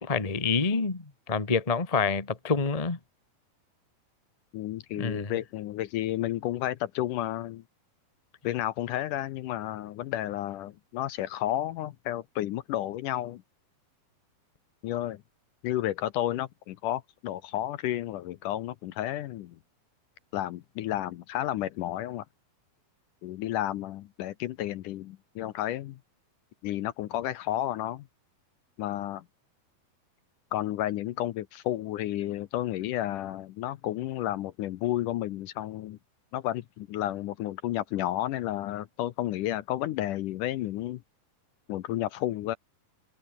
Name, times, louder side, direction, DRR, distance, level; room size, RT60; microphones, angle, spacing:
voice 1, 0.0-3.0 5.0-5.3, left 4 dB, 25° left, 0.7 m, -27 dB
voice 2, 4.5-7.6 8.4-13.4 14.8-15.2 15.6-19.6 20.3-22.3 23.2-26.0 26.6-28.1 28.8-29.2 30.5-36.0 36.3-41.0 41.7-42.6, left 13 dB, 70° left, 2.2 m, -32 dB
omnidirectional pair, 4.2 m